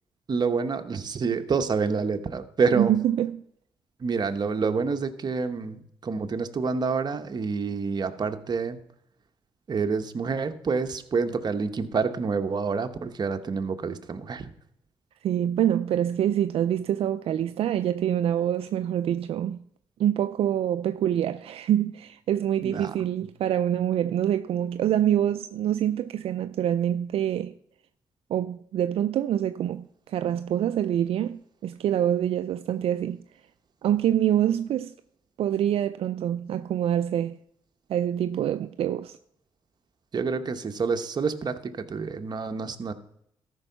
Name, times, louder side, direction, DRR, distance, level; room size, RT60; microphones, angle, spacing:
voice 1, 0.3-2.9 4.0-8.8 9.7-14.5 22.6-22.9 40.1-42.9, right 5 dB, 45° right, 1.0 m, -28 dB
voice 2, 2.8-3.4 15.2-19.6 20.0-27.5 28.3-33.2 33.8-34.9 35.4-37.4 37.9-39.2, right 10 dB, 75° right, 0.4 m, -25 dB
13.0 x 5.4 x 5.6 m
cardioid pair, 85°, 10 cm